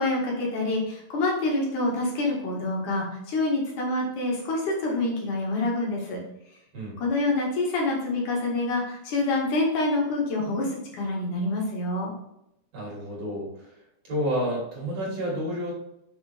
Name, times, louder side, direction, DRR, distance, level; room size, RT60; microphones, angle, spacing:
voice 1, 0.0-6.2 7.0-12.1, left 2 dB, 70° left, -3 dB, 3.5 m, -26 dB
voice 2, 12.7-13.7 14.0-15.7, equal, 50° right, -4 dB, 4.5 m, -30 dB
8.0 x 6.4 x 3.6 m, 0.81 s
omnidirectional pair, 3.7 m